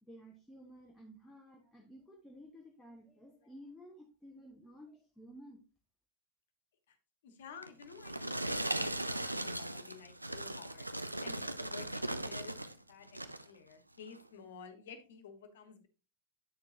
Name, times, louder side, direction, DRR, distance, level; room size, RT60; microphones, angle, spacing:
voice 1, 0.0-5.6, equal, 5° left, 0 dB, 1.2 m, -54 dB
voice 2, 7.2-10.9 11.2-12.6 12.9-13.1 13.4-15.9, left 6 dB, 60° left, 9 dB, 1.4 m, -52 dB
sound 1, 7.6-12.8 13.1-13.5 14.1-14.2, right 1 dB, 85° right, 0.5 m, -38 dB
9.3 x 6.6 x 2.8 m, 0.32 s
figure-of-eight pair, 90°, 0 cm